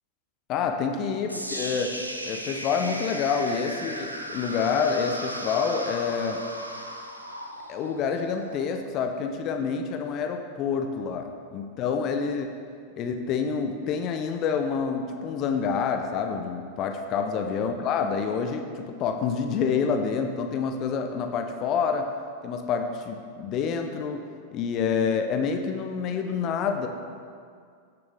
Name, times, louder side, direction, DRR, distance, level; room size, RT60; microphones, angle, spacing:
voice 1, 0.5-1.9 2.2-6.4 7.7-12.5 13.0-22.1 22.4-24.2 24.5-26.9, left 6 dB, 35° left, 5 dB, 0.7 m, -27 dB
sound 1, 1.3-9.3, equal, 85° right, 0.8 m, -36 dB
16.0 x 6.9 x 3.4 m, 2.2 s
figure-of-eight pair, 90°, 0 cm